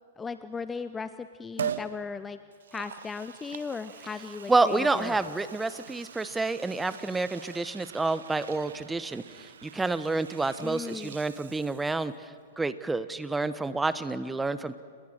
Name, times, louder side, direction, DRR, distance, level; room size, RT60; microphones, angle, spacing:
voice 1, 0.2-2.4 2.7-5.3 10.6-11.2, left 5 dB, 15° left, 12 dB, 0.7 m, -37 dB
Liquid, 1.6-1.9 2.5-12.1 12.5-12.6, right 8 dB, 65° right, 1.1 m, -42 dB
voice 2, 4.5-14.8, right 3 dB, 10° right, 14 dB, 1.1 m, -29 dB
29.5 x 21.0 x 6.6 m, 2.1 s
figure-of-eight pair, 110°, 0 cm